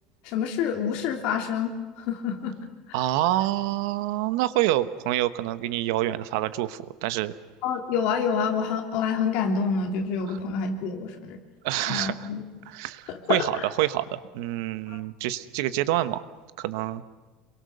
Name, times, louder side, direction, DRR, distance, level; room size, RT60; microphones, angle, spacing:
voice 1, 0.2-2.5 7.6-11.4 11.9-12.4 13.1-13.7 14.9-15.0, left 6 dB, 50° left, 4 dB, 3.1 m, -27 dB
voice 2, 2.9-7.3 10.3-10.4 11.6-12.3 12.7-16.2 16.6-17.0, right 15 dB, 70° right, 14 dB, 1.1 m, -27 dB
28.0 x 22.5 x 6.8 m, 1.3 s
cardioid pair, 180°, 2 cm